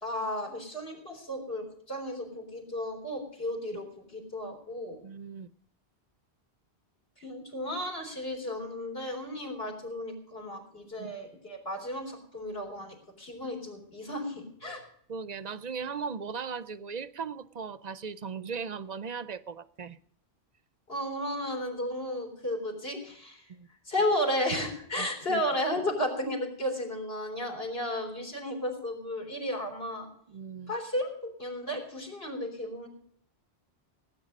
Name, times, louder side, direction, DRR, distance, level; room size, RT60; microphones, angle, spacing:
voice 1, 0.0-5.0 7.2-14.8 20.9-23.5 23.8-30.1 30.7-32.9, left 1 dB, 65° left, 1 dB, 4.1 m, -33 dB
voice 2, 5.0-5.5 11.0-11.1 15.1-20.0 23.5-23.7 25.0-25.4 30.3-30.7, right 5 dB, 45° right, 15 dB, 0.7 m, -38 dB
18.0 x 9.5 x 5.3 m, 0.66 s
omnidirectional pair, 1.1 m